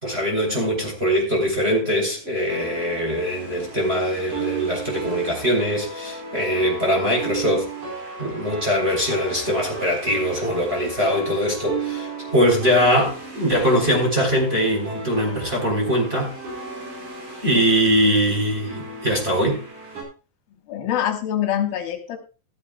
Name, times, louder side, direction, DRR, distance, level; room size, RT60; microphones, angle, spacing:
voice 1, 0.0-7.7 8.2-16.3 17.4-19.6, equal, 15° right, 3.6 m, -22 dB
sound 1, 2.5-20.0, right 3 dB, 55° right, 6.0 m, -35 dB
voice 2, 20.7-22.2, left 10 dB, 80° left, 3.1 m, -25 dB
14.5 x 13.0 x 2.3 m
omnidirectional pair, 4.2 m